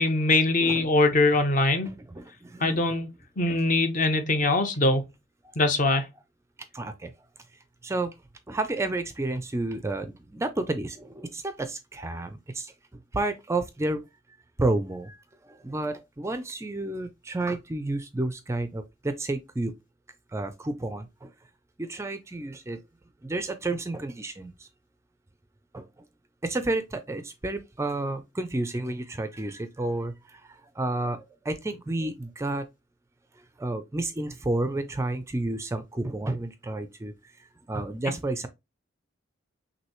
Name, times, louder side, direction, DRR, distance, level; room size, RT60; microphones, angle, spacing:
voice 1, 0.0-1.9 2.6-3.1 3.4-5.0 5.6-6.0, left 2 dB, 40° left, 0.8 m, -22 dB
voice 2, 0.6-0.9 1.8-2.8 3.5-3.6 6.7-7.1 7.8-8.1 8.5-14.0 14.6-19.7 20.3-21.3 21.8-22.8 23.2-24.7 25.7-25.9 26.4-32.6 33.4-38.5, right 2 dB, 15° right, 0.4 m, -31 dB
6.2 x 2.7 x 3.0 m
head